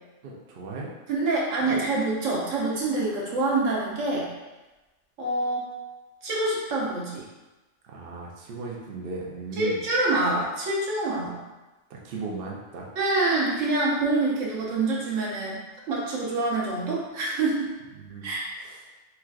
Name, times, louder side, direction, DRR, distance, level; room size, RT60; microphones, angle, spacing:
voice 1, 0.2-0.9 1.6-1.8 7.8-9.8 11.9-12.8 18.0-18.3 18.6-18.8, right 4 dB, 55° right, -2 dB, 0.7 m, -37 dB
voice 2, 1.1-4.3 5.2-5.7 6.2-7.3 9.6-11.4 13.0-17.7 18.2-18.5, right 2 dB, 85° right, -5 dB, 1.2 m, -26 dB
4.3 x 2.3 x 2.4 m, 1.1 s
omnidirectional pair, 1.3 m